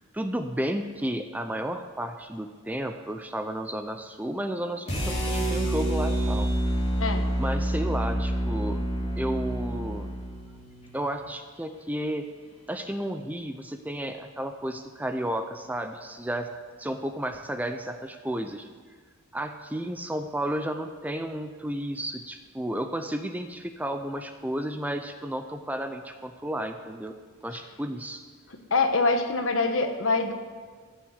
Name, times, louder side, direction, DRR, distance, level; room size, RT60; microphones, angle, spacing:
voice 1, 0.1-6.5 7.4-8.8 9.2-10.1 10.9-12.3 12.7-16.5 16.8-18.7 19.3-27.2 27.4-28.2, right 1 dB, 5° right, 7 dB, 0.5 m, -32 dB
sound 1, 4.9-11.0, equal, 30° left, 3.3 m, -28 dB
voice 2, 28.7-30.3, left 3 dB, 65° left, 6 dB, 1.3 m, -24 dB
15.0 x 6.5 x 8.0 m, 1.5 s
head